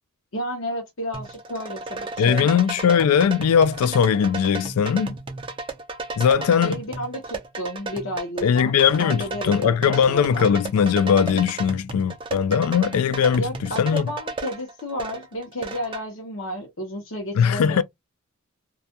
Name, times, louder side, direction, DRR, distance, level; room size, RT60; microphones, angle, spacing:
voice 1, 0.3-2.6 6.6-10.5 13.4-17.8, left 1 dB, 65° left, 0.7 m, -32 dB
Arabic rythm, 1.1-16.0, right 3 dB, 25° right, 0.4 m, -34 dB
voice 2, 2.2-5.2 6.2-6.8 8.4-14.1 17.3-17.8, left 7 dB, 85° left, 0.3 m, -20 dB
2.3 x 2.2 x 2.7 m
head